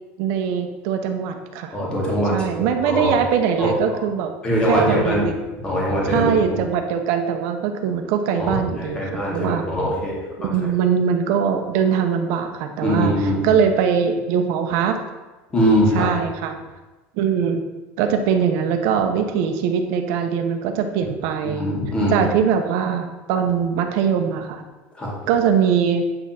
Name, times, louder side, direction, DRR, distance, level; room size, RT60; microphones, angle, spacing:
voice 1, 0.2-1.8 2.3-4.3 4.7-5.3 6.1-9.0 9.3-9.6 10.4-13.1 13.4-15.0 15.9-16.5 17.2-17.6 18.0-21.7 22.1-24.6 25.3-26.0, right 7 dB, 55° right, 6 dB, 0.8 m, -21 dB
voice 2, 1.7-3.1 3.6-3.7 4.4-5.3 5.6-6.6 8.4-10.7 12.8-13.4 15.5-16.1 21.4-22.2 25.0-25.1, equal, 15° left, -4 dB, 1.9 m, -22 dB
9.0 x 3.5 x 5.7 m, 1.2 s
cardioid pair, 175°, 6 cm